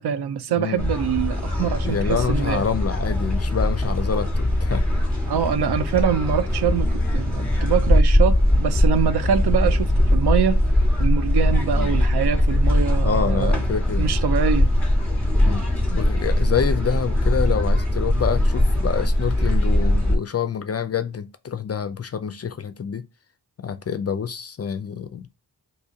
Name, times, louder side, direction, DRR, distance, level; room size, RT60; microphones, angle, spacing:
voice 1, 0.0-2.7 5.3-10.6 11.0-13.6 14.0-14.7, right 8 dB, 65° right, 0.5 m, -24 dB
sound 1, 0.8-20.2, left 1 dB, 5° left, 1.3 m, -21 dB
voice 2, 1.8-4.9 11.7-11.9 13.0-14.1 15.4-23.0 23.6-25.4, left 7 dB, 35° left, 0.4 m, -27 dB
2.7 x 2.7 x 3.7 m
cardioid pair, 55°, 43 cm